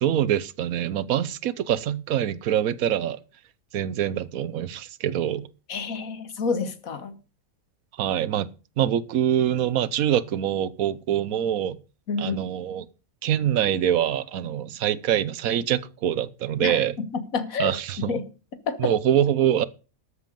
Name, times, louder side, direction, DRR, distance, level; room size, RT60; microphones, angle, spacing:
voice 1, 0.0-3.2 3.7-5.5 8.0-8.5 8.8-11.8 12.2-12.9 13.2-17.0 17.6-18.2 18.8-19.7, right 10 dB, 80° right, 1.2 m, -24 dB
voice 2, 5.7-7.1 12.1-12.4 16.6-17.7 18.1-18.2 18.7-18.9, left 4 dB, 75° left, 1.7 m, -28 dB
13.0 x 8.1 x 5.2 m
omnidirectional pair, 1.5 m